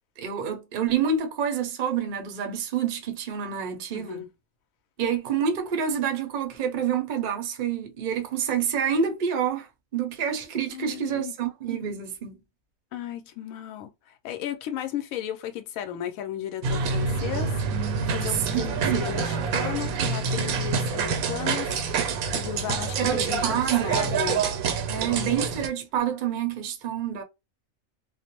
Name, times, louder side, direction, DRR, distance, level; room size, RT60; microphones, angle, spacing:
voice 1, 0.2-4.3 5.0-12.4 18.5-19.1 23.0-24.1 24.9-27.2, right 7 dB, 50° right, 0.6 m, -28 dB
voice 2, 3.9-4.3 10.7-11.3 12.9-21.7 22.0-24.5 24.9-25.4, left 11 dB, 80° left, 1.0 m, -35 dB
sound 1, 16.6-25.7, right 5 dB, 85° right, 1.0 m, -27 dB
2.5 x 2.0 x 2.8 m
omnidirectional pair, 1.4 m